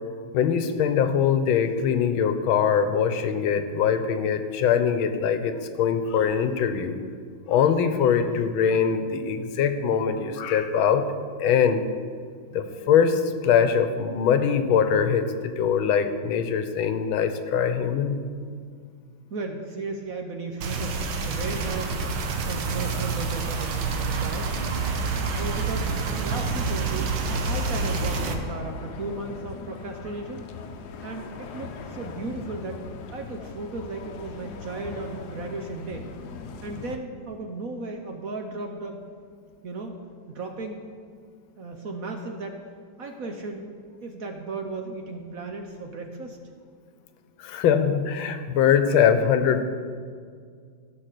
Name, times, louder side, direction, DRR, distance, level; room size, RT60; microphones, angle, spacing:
voice 1, 0.3-6.9 7.5-11.1 11.4-11.8 12.5-18.2 47.4-49.6, left 7 dB, 85° left, 9 dB, 1.6 m, -22 dB
voice 2, 19.3-22.0 22.4-24.6 25.1-30.5 31.0-32.9 33.1-36.1 36.6-39.0 39.6-40.0 40.3-40.9 41.6-42.6 43.0-43.7 44.0-46.4, right 3 dB, 55° right, 4 dB, 1.0 m, -35 dB
sound 1, 20.6-28.3, right 4 dB, 90° right, 1.8 m, -28 dB
sound 2, 27.4-37.0, left 5 dB, 65° left, 1.2 m, -40 dB
14.5 x 6.0 x 6.6 m, 2.1 s
omnidirectional pair, 2.2 m